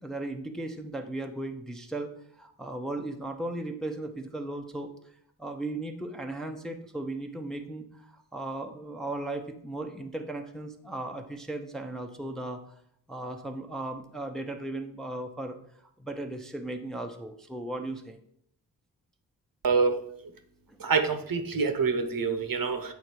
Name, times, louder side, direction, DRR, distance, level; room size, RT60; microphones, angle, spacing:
voice 1, 0.0-4.9 5.4-12.6 13.1-15.6 16.0-18.2 20.7-21.0, right 2 dB, ahead, 4 dB, 0.6 m, -36 dB
voice 2, 19.6-20.1 20.8-22.9, right 5 dB, 50° right, 7 dB, 0.9 m, -26 dB
8.2 x 3.8 x 4.5 m, 0.70 s
cardioid pair, 70°, 44 cm